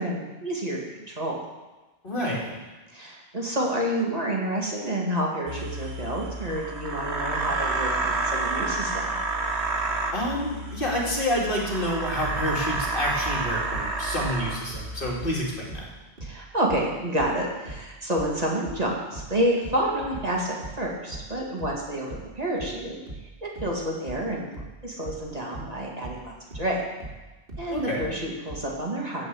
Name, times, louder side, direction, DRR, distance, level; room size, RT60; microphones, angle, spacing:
voice 1, 0.0-1.4 2.9-9.1 16.2-23.0 23.4-24.5 24.8-26.8 27.6-29.3, right 1 dB, 35° right, -2 dB, 2.3 m, -29 dB
voice 2, 2.0-2.5 10.1-15.9 27.7-28.1, equal, 55° left, -3 dB, 2.9 m, -28 dB
sound 1, 5.5-15.7, right 3 dB, 90° right, 1.8 m, -30 dB
sound 2, 12.2-15.4 15.7-28.7, right 2 dB, 55° right, 2.4 m, -40 dB
15.5 x 5.4 x 7.8 m, 1.2 s
omnidirectional pair, 1.1 m